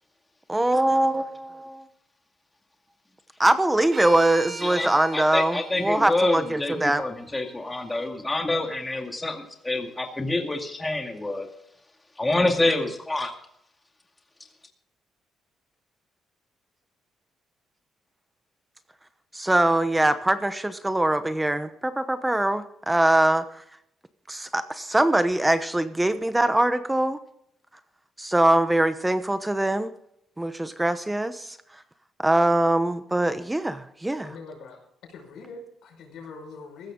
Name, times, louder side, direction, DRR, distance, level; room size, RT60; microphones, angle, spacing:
voice 1, 0.5-1.8 3.4-7.0 19.3-23.6 24.3-27.2 28.2-29.9 30.4-31.6 32.2-34.3, right 1 dB, 10° right, 11 dB, 0.9 m, -23 dB
sound 1, 3.9-8.1, right 3 dB, 35° right, 1.9 m, -42 dB
voice 2, 4.6-11.5 12.2-13.3, left 2 dB, 15° left, 3 dB, 2.2 m, -27 dB
voice 3, 34.2-34.8 35.1-36.9, left 4 dB, 75° left, 2 dB, 5.5 m, -42 dB
16.0 x 13.0 x 3.8 m, 0.73 s
cardioid pair, 90°, 0 cm